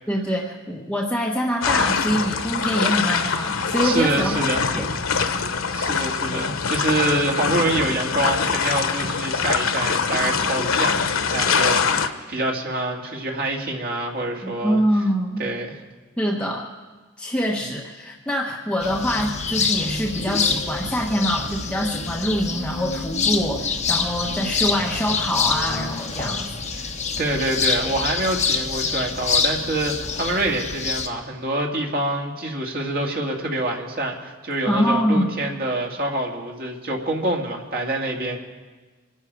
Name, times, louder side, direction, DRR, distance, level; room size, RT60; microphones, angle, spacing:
voice 1, 0.1-4.4 4.7-5.4 14.4-15.4 16.2-16.7 17.2-26.5 34.7-35.4, equal, 5° left, -2 dB, 1.1 m, -24 dB
sound 1, 1.6-12.1, left 5 dB, 85° left, 0.9 m, -23 dB
voice 2, 3.8-4.6 5.7-14.8 15.4-15.8 26.7-26.8 27.2-38.4, right 2 dB, 50° right, 0 dB, 2.3 m, -26 dB
sound 2, 18.8-31.1, left 5 dB, 35° left, 1.1 m, -26 dB
26.0 x 11.0 x 4.7 m, 1.3 s
head